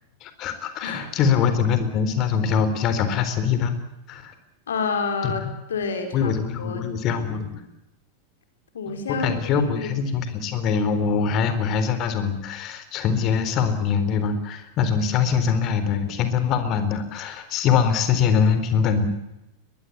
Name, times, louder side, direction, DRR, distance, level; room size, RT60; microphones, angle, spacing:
voice 1, 0.2-3.8 4.1-4.3 5.2-5.3 6.1-7.6 8.9-19.1, left 6 dB, 35° left, 10 dB, 3.9 m, -23 dB
voice 2, 4.7-5.4 5.7-6.3 6.6-6.9 8.7-10.0, left 5 dB, 65° left, 6 dB, 4.8 m, -28 dB
22.5 x 21.5 x 8.5 m, 0.92 s
figure-of-eight pair, 90°, 0 cm